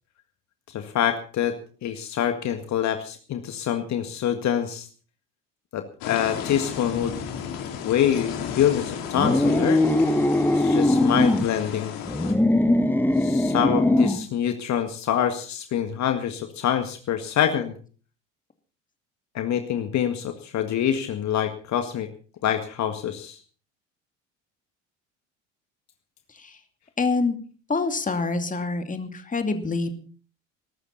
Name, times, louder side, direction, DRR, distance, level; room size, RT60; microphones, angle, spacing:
voice 1, 0.7-1.6 1.8-4.9 5.7-7.2 7.8-9.8 10.5-11.9 13.2-17.7 19.3-22.1 22.4-23.4, left 10 dB, 50° left, 7 dB, 1.9 m, -25 dB
sound 1, 6.0-12.3, left 8 dB, 65° left, 3.6 m, -34 dB
sound 2, 9.1-11.5 12.0-14.3, left 1 dB, 5° left, 1.4 m, -21 dB
voice 2, 27.0-27.3 27.7-30.0, left 3 dB, 20° left, 8 dB, 2.5 m, -26 dB
21.5 x 13.0 x 4.2 m, 0.39 s
hypercardioid pair, 65°, 37 cm